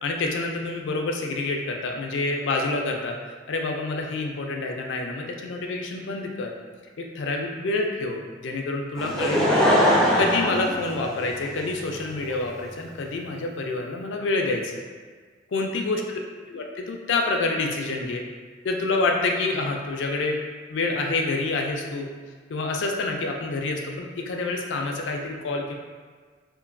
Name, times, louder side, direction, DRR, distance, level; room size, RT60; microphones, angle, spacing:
voice 1, 0.0-3.2 3.5-6.5 7.0-9.7 10.2-14.7 15.5-16.2 16.5-18.2 18.6-20.4 20.7-22.1 22.5-25.7, left 3 dB, 75° left, 2 dB, 0.4 m, -27 dB
Laughter / Crowd, 9.0-11.6 12.3-12.4, equal, 5° left, 0.4 m, -21 dB
2.9 x 2.5 x 2.5 m, 1.5 s
head